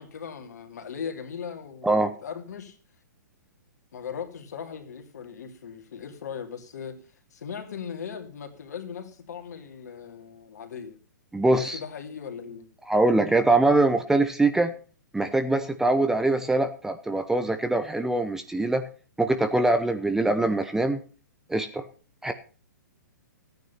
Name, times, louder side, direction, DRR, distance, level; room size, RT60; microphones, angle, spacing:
voice 1, 0.0-2.8 3.9-11.0 11.5-12.7, left 7 dB, 55° left, 2.9 m, -38 dB
voice 2, 11.3-11.8 12.9-14.7 15.1-18.9 19.2-21.0 21.5-21.8 22.2-22.3, right 2 dB, 5° right, 0.9 m, -23 dB
14.5 x 9.5 x 5.8 m
figure-of-eight pair, 120°, 10 cm